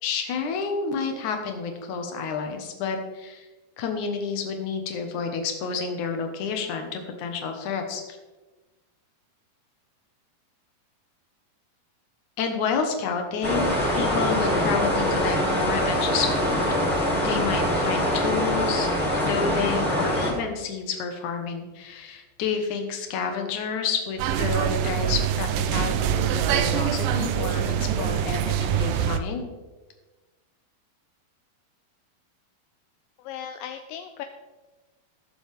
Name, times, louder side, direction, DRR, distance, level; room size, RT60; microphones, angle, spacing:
voice 1, 0.0-3.5 3.8-8.2 12.4-16.6 17.2-29.5, left 5 dB, 65° left, 4 dB, 2.4 m, -30 dB
sound 1, 13.4-20.3, equal, 5° right, 1.8 m, -24 dB
sound 2, 24.2-29.2, right 9 dB, 80° right, 2.0 m, -24 dB
voice 2, 33.2-34.2, left 9 dB, 80° left, 7 dB, 2.1 m, -37 dB
18.5 x 7.2 x 3.5 m, 1.2 s
omnidirectional pair, 4.4 m